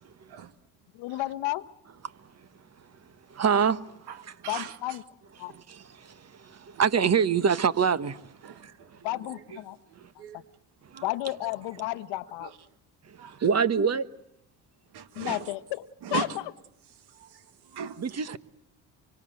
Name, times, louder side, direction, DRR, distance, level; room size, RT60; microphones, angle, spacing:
voice 1, 1.0-1.6 4.5-5.0 5.4-5.5 9.0-9.8 11.0-12.5 15.2-15.6 16.1-16.3, left 17 dB, 80° left, 1.2 m, -31 dB
voice 2, 3.3-3.8 4.2-4.3 5.5-8.2 8.6-8.7 13.4-14.1 18.0-18.4, right 6 dB, 35° right, 1.3 m, -25 dB
voice 3, 4.1-5.0 6.7-6.8 8.4-9.7 10.2-10.4 10.9-11.1 12.4-12.6 13.2-13.4 14.9-15.5 16.0-16.4 17.1-18.0, right 8 dB, 65° right, 1.9 m, -39 dB
25.0 x 24.5 x 7.7 m
supercardioid pair, 70°, 42 cm